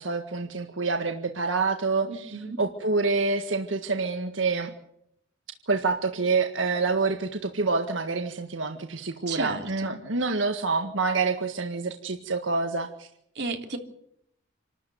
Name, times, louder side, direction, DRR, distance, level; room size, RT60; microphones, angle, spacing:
voice 1, 0.0-4.7 5.7-13.1, right 4 dB, 90° right, 5 dB, 1.7 m, -27 dB
voice 2, 2.0-2.6 9.3-10.0 13.3-13.8, right 3 dB, 60° right, 4 dB, 3.2 m, -33 dB
27.0 x 13.0 x 9.4 m, 0.74 s
head